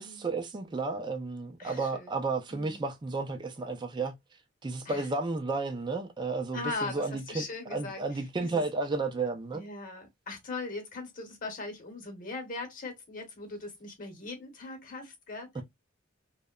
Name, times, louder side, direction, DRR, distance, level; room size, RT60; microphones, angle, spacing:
voice 1, 0.0-4.1 4.6-7.5 7.7-9.6 15.5-15.6, right 3 dB, 25° right, 0.4 m, -32 dB
voice 2, 1.6-2.1 2.5-2.8 4.8-5.1 6.5-8.0 8.4-8.6 9.5-15.6, left 3 dB, 45° left, 0.9 m, -40 dB
2.8 x 2.1 x 2.2 m
head